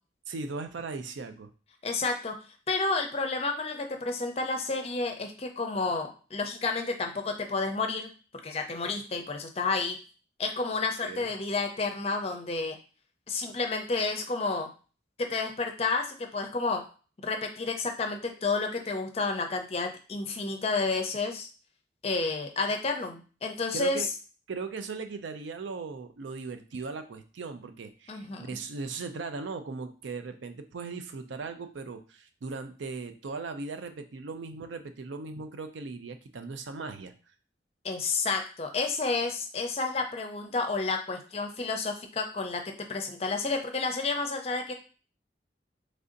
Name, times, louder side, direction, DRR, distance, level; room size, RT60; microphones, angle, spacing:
voice 1, 0.3-1.5 11.0-11.3 23.7-24.1 24.5-37.1, right 4 dB, 85° right, 8 dB, 0.5 m, -38 dB
voice 2, 1.8-2.4 2.7-8.1 8.4-10.0 10.4-12.8 13.3-14.7 15.2-16.8 17.2-21.5 22.0-24.1 28.1-28.5 37.8-44.7, left 3 dB, 35° left, 4 dB, 0.5 m, -30 dB
3.2 x 2.6 x 3.8 m, 0.37 s
head